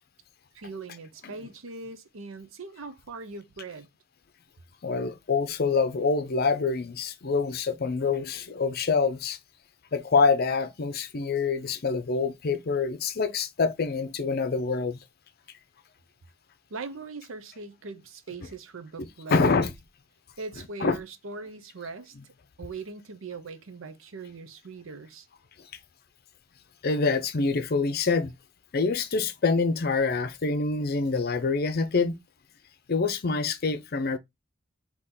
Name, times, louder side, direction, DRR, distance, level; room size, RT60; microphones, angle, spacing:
voice 1, 0.5-3.9 16.7-19.6 20.4-22.1 22.6-25.3, right 4 dB, 75° right, 0.7 m, -40 dB
voice 2, 4.8-9.4 9.9-15.0 19.3-19.7 20.8-21.0 26.8-28.3 28.7-32.2 32.9-34.2, left 4 dB, 50° left, 0.6 m, -26 dB
3.7 x 2.9 x 4.2 m
head